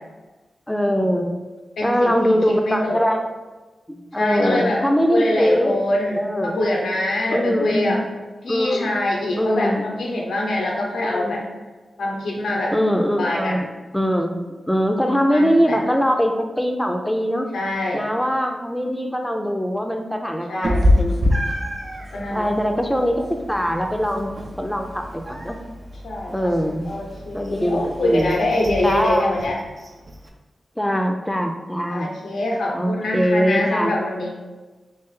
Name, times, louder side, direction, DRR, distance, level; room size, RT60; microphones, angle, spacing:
voice 1, 0.7-1.4 1.8-3.2 3.9-5.8 6.2-6.6 7.3-8.0 8.5-8.9 9.4-9.9 11.1-11.5 12.7-13.7 13.9-17.5 17.9-21.3 22.3-25.6 26.3-26.9 27.3-28.4 28.8-29.4 30.8-32.1 32.7-34.0, equal, 5° left, 4 dB, 0.5 m, -22 dB
voice 2, 1.8-3.0 4.2-4.8 5.1-8.0 8.4-11.4 12.0-12.7 13.2-13.6 15.3-15.8 17.5-18.0 20.5-20.8 22.1-22.5 26.0-26.5 26.9-29.6 31.9-34.3, left 1 dB, 85° left, -1 dB, 0.7 m, -24 dB
Meow, 20.6-30.3, left 1 dB, 50° right, 0.5 m, -27 dB
3.2 x 2.5 x 3.7 m, 1.2 s
cardioid pair, 45°, 0 cm